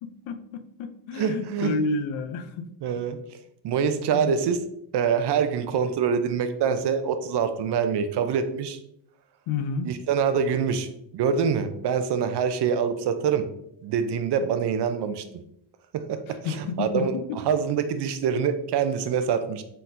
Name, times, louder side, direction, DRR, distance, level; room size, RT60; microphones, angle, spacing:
voice 1, 0.0-2.7 3.9-4.4 9.5-9.9 16.3-17.4, left 4 dB, 80° left, 10 dB, 0.6 m, -31 dB
voice 2, 1.2-1.8 2.8-3.2 3.6-4.6 4.9-8.8 9.9-13.5 13.8-15.2 15.9-17.1 17.5-19.6, right 7 dB, 55° right, 10 dB, 0.6 m, -25 dB
4.4 x 3.9 x 2.6 m, 0.75 s
cardioid pair, 80°, 48 cm